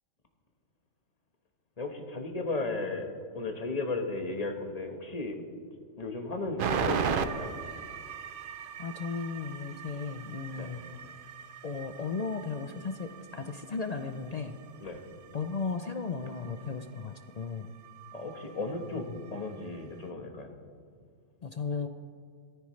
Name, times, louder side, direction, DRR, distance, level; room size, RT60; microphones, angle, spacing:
voice 1, 1.8-5.4 6.0-7.6 10.6-10.7 14.8-15.0 18.1-20.5, left 3 dB, 30° left, 4 dB, 1.3 m, -35 dB
sound 1, 6.6-20.1, right 6 dB, 55° right, 0.6 m, -39 dB
voice 2, 8.8-10.8 11.6-14.6 15.3-17.7 21.4-21.9, left 4 dB, 70° left, 7 dB, 0.3 m, -35 dB
18.0 x 14.0 x 3.2 m, 2.2 s
omnidirectional pair, 1.4 m